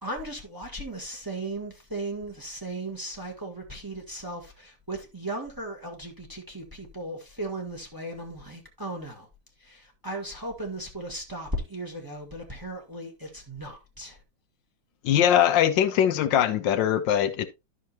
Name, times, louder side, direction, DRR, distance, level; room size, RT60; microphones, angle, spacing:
voice 1, 0.0-9.3 9.6-14.2, right 1 dB, 10° right, 1.6 m, -36 dB
voice 2, 15.0-17.5, left 10 dB, 75° left, 1.4 m, -21 dB
11.5 x 6.1 x 2.9 m
omnidirectional pair, 2.1 m